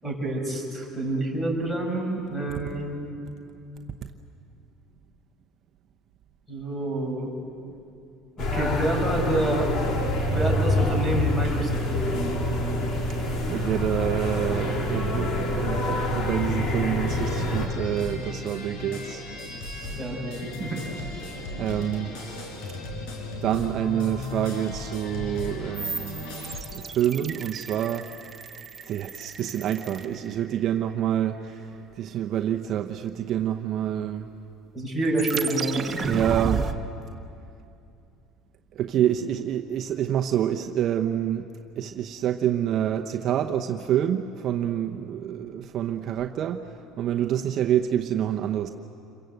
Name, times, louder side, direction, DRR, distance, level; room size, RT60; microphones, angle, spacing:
voice 1, 0.0-3.1 6.5-7.3 8.4-9.7 10.3-12.4 20.0-20.8 34.7-36.2, right 2 dB, 5° left, 0 dB, 6.1 m, -28 dB
sound 1, 8.4-17.7, left 1 dB, 50° left, 3.6 m, -26 dB
voice 2, 13.5-19.2 21.6-22.2 23.4-26.2 26.7-28.1 28.9-34.3 36.1-36.7 38.7-41.5 41.8-46.7 47.0-48.7, right 10 dB, 45° right, 4 dB, 0.9 m, -27 dB
sound 2, 17.1-26.6, left 2 dB, 75° left, 5.5 m, -36 dB
sound 3, 25.7-30.8 35.2-36.7, right 5 dB, 25° right, 1.2 m, -33 dB
27.5 x 23.5 x 7.9 m, 2.6 s
cardioid pair, 145°, 0 cm